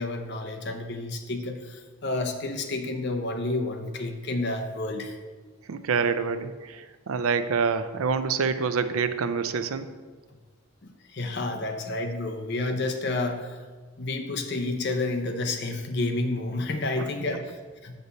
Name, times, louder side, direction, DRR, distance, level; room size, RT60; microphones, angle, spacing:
voice 1, 0.0-5.2 10.8-13.6 14.0-18.0, left 2 dB, 50° left, 4 dB, 0.7 m, -30 dB
voice 2, 5.7-9.9, right 5 dB, 75° right, 11 dB, 0.5 m, -26 dB
6.8 x 6.6 x 4.1 m, 1.4 s
head